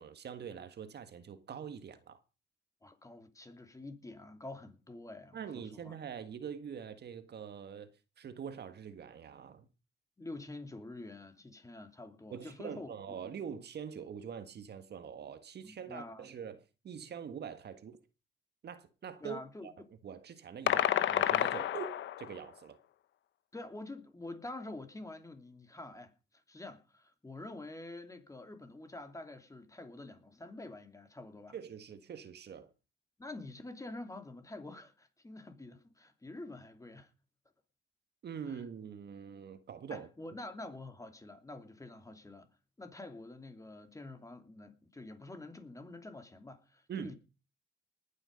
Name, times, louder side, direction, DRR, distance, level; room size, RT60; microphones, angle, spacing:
voice 1, 0.0-2.2 5.3-7.9 8.2-9.7 12.3-16.6 16.8-18.0 18.6-19.7 20.0-21.9 22.2-22.8 31.5-32.7 38.2-40.1 46.9-47.1, right 7 dB, 55° right, 1.7 m, -44 dB
voice 2, 2.8-6.0 10.2-13.2 15.6-16.3 19.2-19.7 23.5-31.6 33.2-37.1 38.5-38.6 39.9-42.5 42.8-47.1, left 2 dB, 15° left, 2.8 m, -47 dB
sound 1, 20.7-22.4, left 11 dB, 70° left, 0.9 m, -30 dB
19.5 x 9.6 x 5.2 m
cardioid pair, 90°, 20 cm